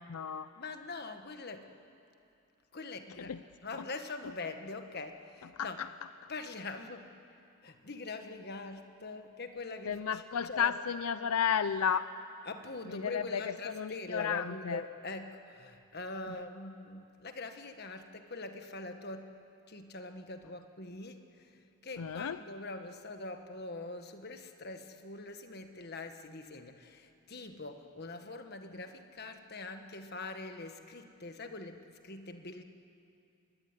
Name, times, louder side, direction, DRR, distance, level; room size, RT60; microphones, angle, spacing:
voice 1, 0.0-0.5 3.2-3.4 3.7-3.9 5.6-5.9 6.2-6.3 9.9-12.1 12.9-14.8 16.3-16.4 22.0-22.4, left 7 dB, 80° left, 13 dB, 0.5 m, -33 dB
voice 2, 0.6-1.7 2.7-3.3 3.6-5.8 6.3-7.1 7.6-10.7 12.5-19.3 19.7-32.6, left 3 dB, 45° left, 7 dB, 1.5 m, -43 dB
24.5 x 19.5 x 9.7 m, 2.6 s
head